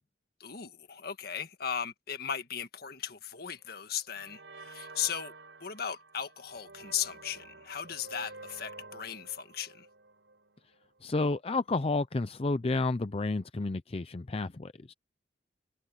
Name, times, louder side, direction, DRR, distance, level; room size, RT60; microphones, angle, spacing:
voice 1, 0.4-5.3 5.6-9.9, left 8 dB, 60° left, 1.7 m, -37 dB
sound 1, 3.4-3.7 4.2-11.0, right 3 dB, 90° right, 8.0 m, -50 dB
voice 2, 11.0-14.9, left 3 dB, 35° left, 0.5 m, -31 dB
head